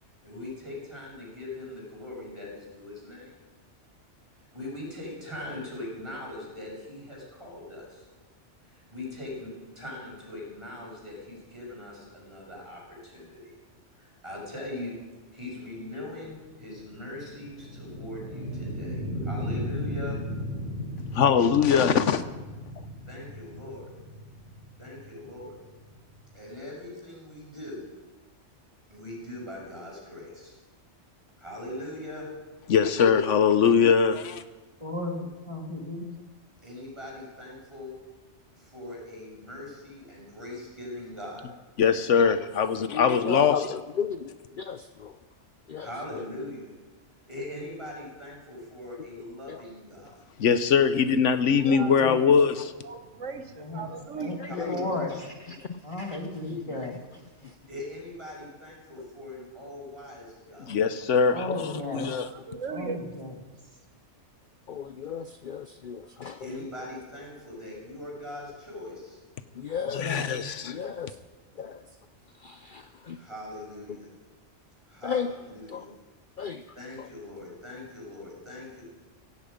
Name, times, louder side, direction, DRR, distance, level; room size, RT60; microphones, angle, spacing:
voice 1, 0.0-3.3 4.3-8.1 8.6-13.5 13.9-15.0 15.3-20.2 23.0-23.9 24.8-25.6 26.3-27.8 28.9-30.6 31.4-32.3 36.6-37.9 38.5-41.5 45.8-46.7 47.1-50.3 54.5-55.0 57.7-60.8 66.4-69.2 73.2-74.1 74.9-75.9 76.7-78.8, left 1 dB, 25° right, -3 dB, 6.1 m, -41 dB
sound 1, 16.1-26.3, equal, 65° right, 5.8 m, -36 dB
voice 2, 21.1-22.3 32.7-34.4 41.8-43.7 50.4-52.7 60.7-62.3 69.9-70.8, left 6 dB, 80° left, 12 dB, 1.1 m, -22 dB
voice 3, 34.8-36.1 51.9-52.3 53.6-53.8 54.2-55.1 55.8-56.9 61.3-62.1 62.7-63.3 70.0-70.3, left 1 dB, 25° left, 1 dB, 2.3 m, -34 dB
voice 4, 42.9-44.3 44.6-45.2 45.7-45.9 49.5-49.6 51.5-51.9 54.4-54.7 55.5-57.0 57.4-57.5 61.5-61.6 61.9-62.1 64.7-66.4 69.6-70.4 70.6-71.1 71.6-71.8 72.4-73.2 75.0-75.3 75.7-75.8 76.4-76.6, left 7 dB, 50° left, 10 dB, 0.7 m, -35 dB
voice 5, 51.6-52.2 52.8-54.4 62.3-63.0, right 4 dB, 85° right, 7 dB, 1.6 m, -37 dB
17.0 x 16.5 x 5.2 m, 1.3 s
omnidirectional pair, 1.2 m